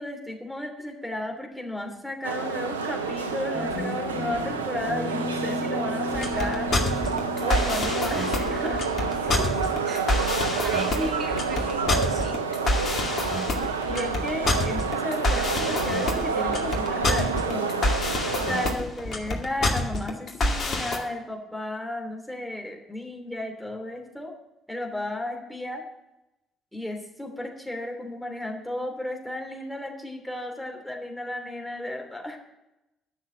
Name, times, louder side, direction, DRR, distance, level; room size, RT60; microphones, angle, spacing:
voice 1, 0.0-6.7 7.4-8.9 10.9-11.2 13.9-17.8 18.5-24.3 24.7-25.8 26.7-32.4, left 1 dB, 5° left, 2 dB, 3.1 m, -34 dB
sound 1, 2.2-18.7, right 5 dB, 90° right, 0.6 m, -29 dB
Guitar, 3.5-10.1, left 2 dB, 20° left, 4.5 m, -36 dB
sound 2, 6.1-21.0, left 2 dB, 45° left, 2.2 m, -27 dB
voice 2, 9.2-10.3 10.6-12.4 16.9-17.0 18.2-18.5, right 4 dB, 45° right, 3 dB, 1.5 m, -40 dB
11.0 x 6.5 x 8.8 m, 0.94 s
hypercardioid pair, 50°, 0 cm